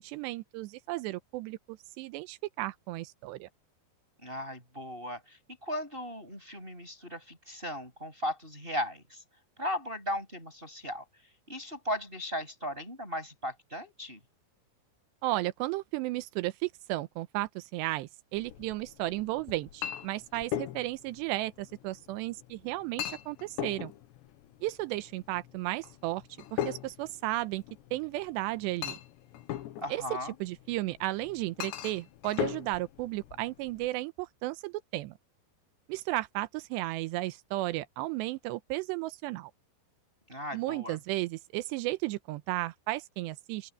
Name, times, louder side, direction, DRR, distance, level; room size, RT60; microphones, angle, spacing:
voice 1, 0.0-3.5 15.2-23.9 24.6-26.2 26.5-27.6 27.9-29.0 29.9-30.0 30.4-35.1 35.9-39.5 40.5-43.7, right 18 dB, 90° right, 2.9 m, -34 dB
voice 2, 4.2-9.2 9.6-11.0 11.5-14.2 29.8-30.3 40.3-41.0, equal, 10° right, 7.3 m, -37 dB
Chink clink, 18.4-33.9, left 12 dB, 85° left, 3.5 m, -40 dB
open air
omnidirectional pair, 5.0 m